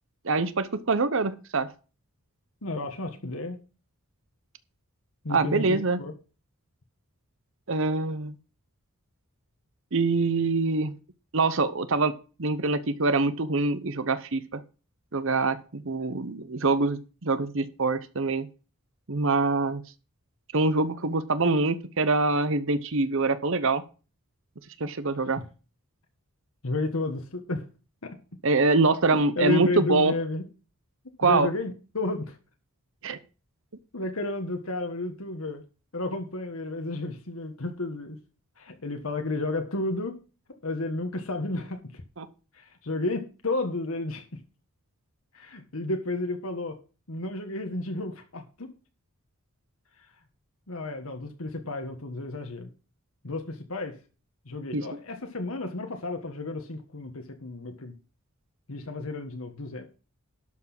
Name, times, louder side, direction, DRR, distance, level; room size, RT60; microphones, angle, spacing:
voice 1, 0.2-1.7 5.3-6.0 7.7-8.3 9.9-10.9 11.3-12.1 12.4-14.6 15.1-18.5 19.1-19.8 20.5-23.8 24.8-25.4 28.4-30.1 31.2-31.5 33.0-33.2 42.2-42.3 54.7-54.8, right 3 dB, 60° right, 13 dB, 0.9 m, -24 dB
voice 2, 2.6-3.6 5.2-6.1 26.6-27.6 28.0-28.2 29.1-30.4 31.2-32.4 33.9-35.6 35.9-38.2 38.6-40.2 40.6-42.0 42.5-44.2 45.3-46.8 47.1-48.7 50.7-52.7 53.2-54.0 54.4-57.9 58.7-59.9, left 2 dB, 65° left, 6 dB, 1.5 m, -32 dB
12.0 x 6.1 x 6.0 m, 0.34 s
head